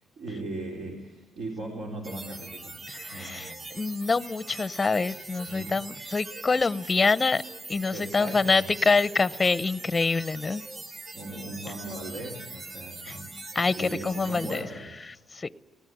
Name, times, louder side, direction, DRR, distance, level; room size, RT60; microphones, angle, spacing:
voice 1, 0.2-2.8 3.1-3.6 5.5-5.8 7.9-8.7 11.1-14.9, right 2 dB, 75° right, 3.9 m, -38 dB
sound 1, 2.0-14.6, right 2 dB, 40° right, 4.1 m, -42 dB
voice 2, 2.9-7.4 7.7-10.6 13.1-13.2 13.5-14.7 15.1-15.5, left 4 dB, 25° left, 0.6 m, -26 dB
19.0 x 18.5 x 9.3 m
cardioid pair, 90°, 0 cm